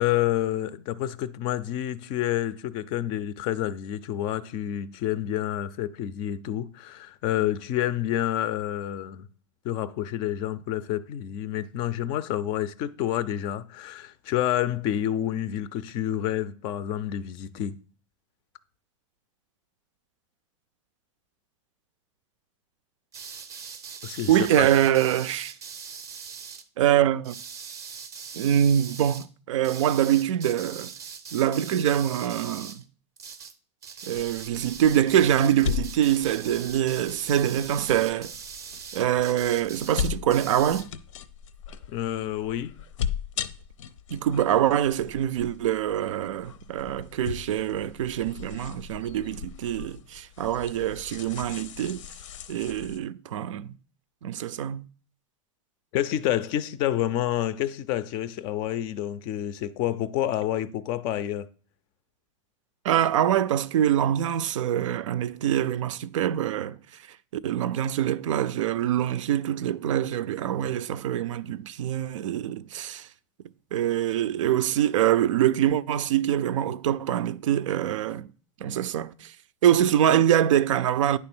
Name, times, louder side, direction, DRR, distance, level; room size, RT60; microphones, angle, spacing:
voice 1, 0.0-9.3 9.6-17.8 24.0-24.3 24.6-24.7 41.9-42.8 55.9-61.5, left 12 dB, 30° left, 0.4 m, -28 dB
sound 1, 23.1-26.6 27.2-29.3 29.6-32.8 33.2-33.6 33.8-40.9, right 6 dB, 20° right, 0.5 m, -41 dB
voice 2, 24.3-25.5 26.8-27.3 28.3-30.9 31.3-32.8 34.0-38.3 38.9-40.9 44.1-52.0 52.5-53.7 54.2-54.8 62.8-66.8 67.3-73.1 73.7-78.3 78.6-79.3 79.6-81.2, right 11 dB, 90° right, 0.5 m, -24 dB
sound 2, 34.1-53.0, left 8 dB, 90° left, 0.7 m, -38 dB
9.5 x 3.5 x 6.0 m
supercardioid pair, 155°, 16 cm